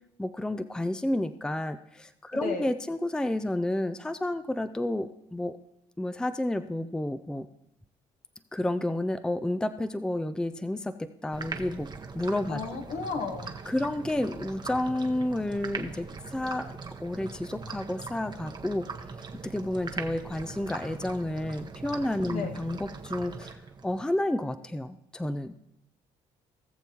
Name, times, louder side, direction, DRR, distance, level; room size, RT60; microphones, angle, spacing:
voice 1, 0.2-5.6 6.0-7.5 8.5-11.9 12.1-12.6 13.7-18.9 19.4-23.6 23.8-25.5, left 1 dB, 5° left, 11 dB, 0.5 m, -30 dB
sound 1, 11.3-24.0, right 4 dB, 30° right, 1.0 m, -41 dB
voice 2, 12.5-13.5 22.3-22.5, left 5 dB, 65° left, 5 dB, 1.4 m, -33 dB
18.0 x 6.9 x 2.9 m, 0.80 s
supercardioid pair, 70°, 14 cm